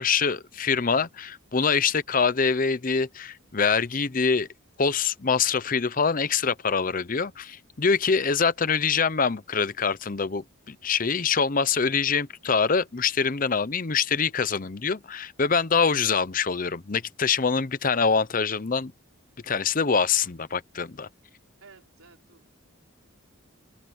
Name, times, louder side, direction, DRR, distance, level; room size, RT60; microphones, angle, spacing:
voice 1, 0.0-4.5 4.8-18.9 19.4-21.1, left 5 dB, 40° left, 0.7 m, -24 dB
voice 2, 21.6-22.5, right 4 dB, 85° right, 5.0 m, -53 dB
head